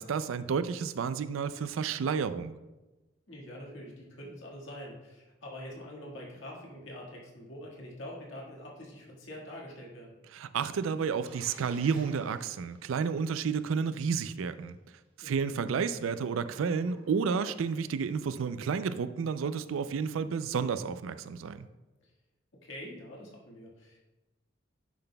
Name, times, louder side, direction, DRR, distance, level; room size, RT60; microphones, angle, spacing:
voice 1, 0.0-2.5 10.3-14.8 15.2-21.7, right 6 dB, 85° right, 12 dB, 0.4 m, -31 dB
voice 2, 3.3-10.1 15.2-15.7 22.0-22.1 22.6-24.0, equal, 70° left, -3 dB, 1.7 m, -45 dB
sound 1, 11.2-13.9 16.3-17.8, right 1 dB, 30° right, 1.3 m, -55 dB
10.0 x 5.9 x 2.2 m, 1.1 s
head